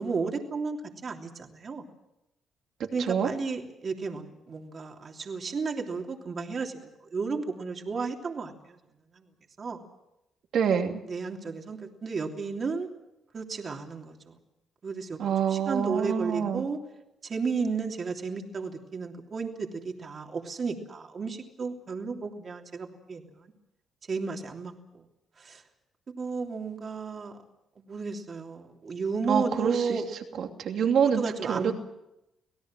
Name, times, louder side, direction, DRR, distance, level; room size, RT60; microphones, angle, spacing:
voice 1, 0.0-1.8 2.9-8.8 9.1-9.3 9.6-9.8 11.1-12.9 13.3-14.3 14.8-16.8 17.2-23.5 24.1-25.0 25.4-25.6 26.2-27.4 27.8-30.1 31.0-31.7, right 4 dB, 45° right, 2 dB, 3.2 m, -33 dB
voice 2, 10.5-11.0 15.2-16.6 29.3-30.0 30.4-31.2 31.5-31.7, right 7 dB, 65° right, 4 dB, 2.8 m, -26 dB
26.5 x 17.5 x 7.6 m, 0.88 s
cardioid pair, 90°, 0 cm